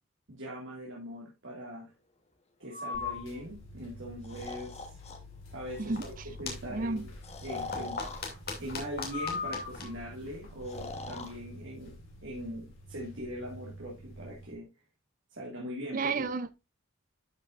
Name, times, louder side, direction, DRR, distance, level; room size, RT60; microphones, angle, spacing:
voice 1, 0.3-1.9 2.6-5.0 5.5-6.1 6.4-7.1 7.4-8.0 8.6-12.0 12.2-14.7 15.3-16.3, equal, 65° right, 2.1 m, -41 dB
Breathing, 2.7-3.2 4.2-5.2 5.7-6.1 7.2-8.2 9.1-9.9 10.6-11.3, left 5 dB, 30° left, 1.2 m, -38 dB
sound 1, 2.9-14.5, equal, 70° left, 5.1 m, -49 dB
sound 2, 5.8-11.0, left 4 dB, 50° left, 2.6 m, -43 dB
voice 2, 6.6-7.0 15.9-16.5, right 4 dB, 40° right, 0.5 m, -31 dB
12.0 x 5.6 x 2.5 m
head